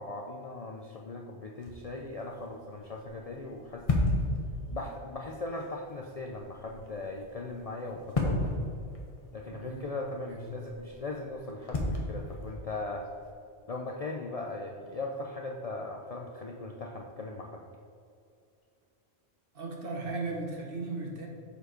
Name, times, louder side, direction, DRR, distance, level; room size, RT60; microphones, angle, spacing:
voice 1, 0.0-3.9 4.7-8.5 9.3-13.1 13.7-17.6, left 2 dB, 50° left, 1 dB, 0.4 m, -39 dB
sound 1, 1.6-13.3, left 2 dB, 35° left, 1.0 m, -36 dB
voice 2, 9.5-9.9 10.3-10.5 19.5-21.3, right 3 dB, 55° right, 0 dB, 1.3 m, -36 dB
6.8 x 4.5 x 5.0 m, 2.4 s
omnidirectional pair, 1.1 m